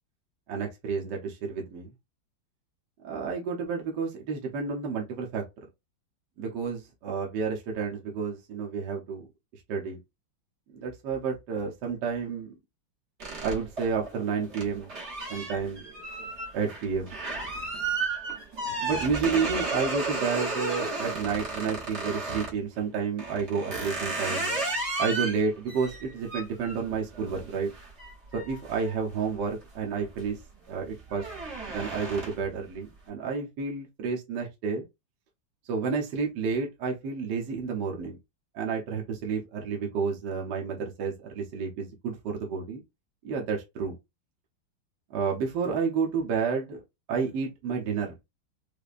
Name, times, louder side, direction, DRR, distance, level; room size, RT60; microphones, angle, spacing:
voice 1, 0.5-1.9 3.0-5.7 6.4-9.3 9.7-10.0 10.7-12.5 13.4-14.9 15.3-15.8 16.5-17.1 18.8-24.6 25.0-27.7 28.3-30.4 30.7-31.3 31.7-34.8 35.6-38.2 38.5-42.8 43.2-44.0 45.1-46.8 47.1-48.1, right 5 dB, 65° right, 1.3 m, -30 dB
sound 1, 13.2-22.6 23.2-29.6 30.0-30.4 30.7-32.6, right 3 dB, 40° right, 1.3 m, -34 dB
5.0 x 2.2 x 2.4 m
omnidirectional pair, 2.2 m